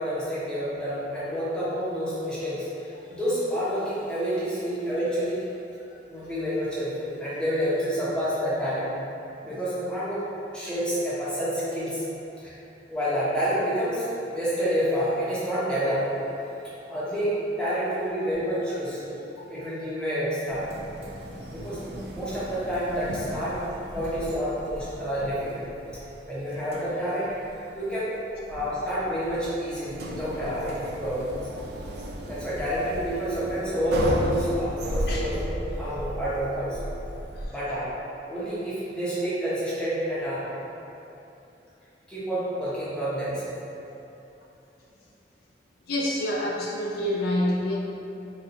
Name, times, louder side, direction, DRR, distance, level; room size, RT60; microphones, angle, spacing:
voice 1, 0.0-5.4 6.1-9.0 9.4-12.0 12.4-12.6 12.9-16.2 16.9-19.2 19.5-20.7 21.5-21.8 22.1-23.6 23.9-25.7 25.9-28.1 28.5-31.4 32.3-36.9 37.5-37.9 38.3-40.5 42.1-43.5, equal, 5° left, -11 dB, 0.8 m, -28 dB
sound 1, 20.5-37.4, right 1 dB, 60° right, 0.4 m, -35 dB
voice 2, 45.9-47.8, left 1 dB, 60° left, -4 dB, 0.4 m, -27 dB
4.2 x 2.3 x 2.6 m, 2.9 s
head